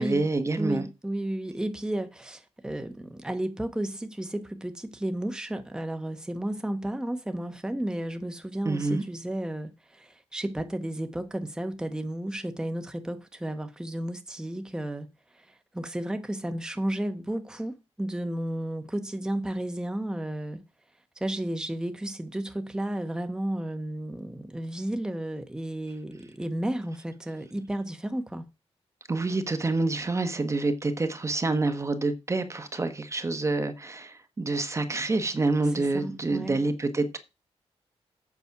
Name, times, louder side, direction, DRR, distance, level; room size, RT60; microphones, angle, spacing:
voice 1, 0.0-0.8 8.6-9.0 29.1-37.2, right 3 dB, 25° right, 1.2 m, -27 dB
voice 2, 0.6-15.1 15.3-20.6 21.2-28.5 35.8-36.6, right 1 dB, 5° right, 1.1 m, -33 dB
8.3 x 6.0 x 5.9 m
wide cardioid pair, 115°, 11 cm